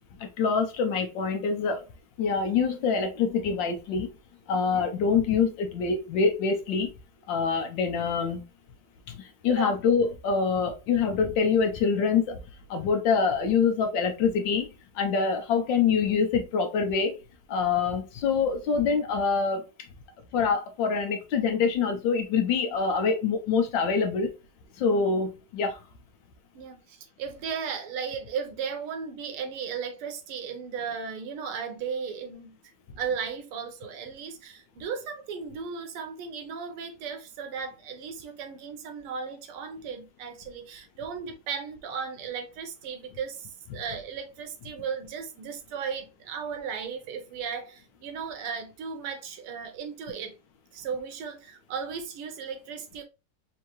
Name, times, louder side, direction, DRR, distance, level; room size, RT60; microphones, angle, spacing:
voice 1, 0.2-1.9 2.2-4.1 4.5-6.9 7.3-8.4 9.1-12.4 12.7-14.7 14.9-17.2 17.5-19.9 20.3-24.4 24.8-25.8, left 5 dB, 70° left, 1.3 m, -25 dB
voice 2, 4.5-4.8 9.6-9.7 26.6-32.6 33.0-50.4 50.7-53.0, right 6 dB, 90° right, 1.7 m, -36 dB
4.4 x 2.9 x 2.9 m
omnidirectional pair, 2.3 m